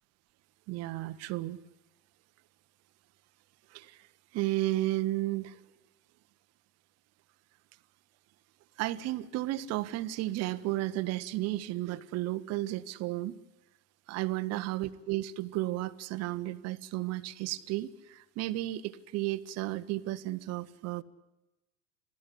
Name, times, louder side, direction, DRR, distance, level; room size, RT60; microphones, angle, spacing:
voice 1, 0.7-1.6 3.7-4.0 4.3-5.6 8.8-13.4 14.1-21.0, right 16 dB, 35° right, 12 dB, 1.2 m, -33 dB
26.5 x 16.5 x 9.9 m, 0.99 s
figure-of-eight pair, 85°, 43 cm